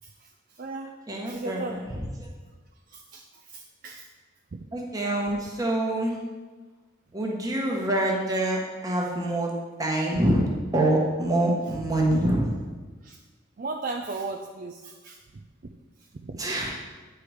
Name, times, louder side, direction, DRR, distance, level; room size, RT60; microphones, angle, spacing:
voice 1, 0.0-0.9 1.3-1.8 2.9-4.1 13.0-13.2 13.6-15.4 16.2-16.4, right 3 dB, 45° right, 3 dB, 0.4 m, -36 dB
voice 2, 1.1-2.0 4.7-6.2 7.1-9.5 9.8-10.4 10.7-12.6 16.4-16.7, right 1 dB, 20° right, -2 dB, 1.3 m, -25 dB
8.6 x 4.7 x 4.9 m, 1.3 s
head